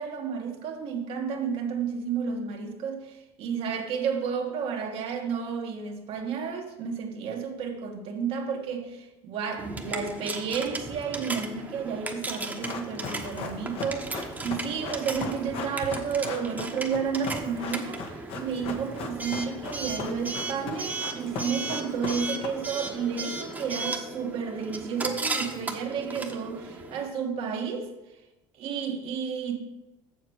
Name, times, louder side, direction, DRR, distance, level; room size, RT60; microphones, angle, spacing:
voice 1, 0.0-27.9 28.6-29.6, right 6 dB, 65° right, 1.4 m, -31 dB
Coin (dropping) / Alarm, 9.6-27.1, right 3 dB, 15° right, 1.1 m, -36 dB
Run, 12.3-22.9 23.2-23.3, left 4 dB, 65° left, 1.2 m, -37 dB
7.3 x 7.1 x 4.6 m
supercardioid pair, 100°, 11 cm